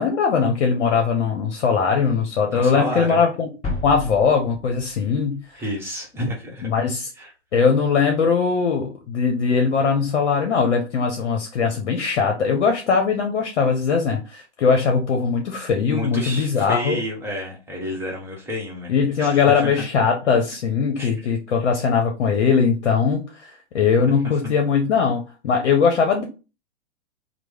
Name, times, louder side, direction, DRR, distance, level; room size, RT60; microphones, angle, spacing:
voice 1, 0.0-3.5 3.8-5.6 6.6-7.1 7.5-17.0 18.9-26.2, left 5 dB, 70° left, 3 dB, 0.8 m, -20 dB
voice 2, 2.5-3.2 5.5-6.7 7.2-7.3 15.9-19.8 21.0-21.1 23.9-24.0 24.4-24.5, equal, 5° right, -2 dB, 0.9 m, -30 dB
sound 1, 3.6-5.7, left 2 dB, 15° left, 1.2 m, -32 dB
3.0 x 2.0 x 3.5 m, 0.31 s
hypercardioid pair, 120°, 35 cm